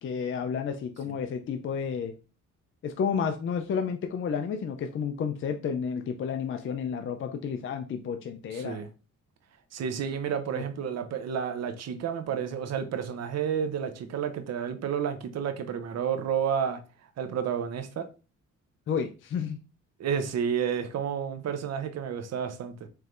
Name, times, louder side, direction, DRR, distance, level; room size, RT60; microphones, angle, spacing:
voice 1, 0.0-2.1 2.8-8.8 10.5-10.6 18.9-19.6, left 6 dB, 45° left, 0.5 m, -31 dB
voice 2, 8.5-8.9 9.7-16.8 17.2-18.1 20.0-22.9, right 8 dB, 60° right, 0.7 m, -30 dB
4.5 x 3.2 x 2.5 m
cardioid pair, 90°, 30 cm